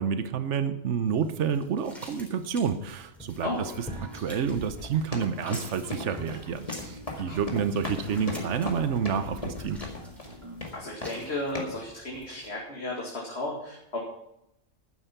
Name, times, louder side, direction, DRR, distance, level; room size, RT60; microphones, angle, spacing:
voice 1, 0.0-3.5 4.1-9.8, right 7 dB, 80° right, 11 dB, 1.2 m, -29 dB
sound 1, 1.1-12.5, equal, ahead, 3.3 m, -47 dB
sound 2, 3.3-10.7, equal, 25° right, 2.4 m, -46 dB
sound 3, 4.8-10.4 10.6-11.3 11.5-11.8, left 2 dB, 30° left, 2.3 m, -37 dB
voice 2, 10.7-14.0, left 2 dB, 60° left, -2 dB, 2.6 m, -34 dB
12.5 x 9.5 x 5.9 m, 0.81 s
omnidirectional pair, 1.2 m